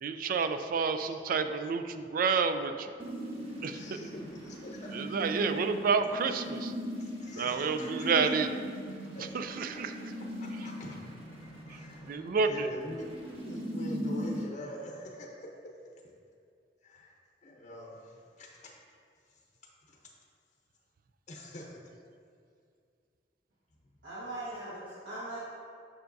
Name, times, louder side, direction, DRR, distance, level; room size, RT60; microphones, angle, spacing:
voice 1, 0.0-2.9 3.6-3.8 4.9-6.7 7.3-8.5 9.3-9.9 11.7-11.8 12.1-12.7, right 5 dB, 55° right, 9 dB, 0.4 m, -29 dB
voice 2, 3.0-5.0 6.9-8.4 9.1-9.6 10.2-12.2 12.5-13.1 13.4-15.5 16.8-18.7 19.3-19.4 19.9-20.1 21.3-21.8 23.8-24.1, left 1 dB, 40° left, -1 dB, 0.7 m, -45 dB
sound 1, 3.0-14.4, equal, 35° right, 1.2 m, -39 dB
voice 3, 24.0-25.4, right 1 dB, 70° right, -10 dB, 1.5 m, -40 dB
7.0 x 6.3 x 2.6 m, 2.3 s
head